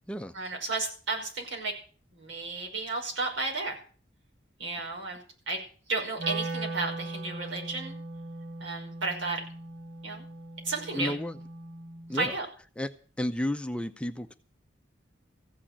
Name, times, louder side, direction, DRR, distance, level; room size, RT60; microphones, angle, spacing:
voice 1, 0.3-1.7 2.1-3.8 4.6-5.2 5.5-5.6 5.9-8.0 8.6-9.4 10.0-10.3 10.6-11.1 12.1-12.5, right 3 dB, 90° right, 0 dB, 5.5 m, -32 dB
Wind instrument woodwind instrument, 6.2-12.3, right 2 dB, 55° right, 1.7 m, -39 dB
voice 2, 10.9-11.4 12.1-12.3 12.8-12.9 13.2-14.3, left 1 dB, 5° left, 8 dB, 0.6 m, -32 dB
15.0 x 7.4 x 8.6 m, 0.41 s
head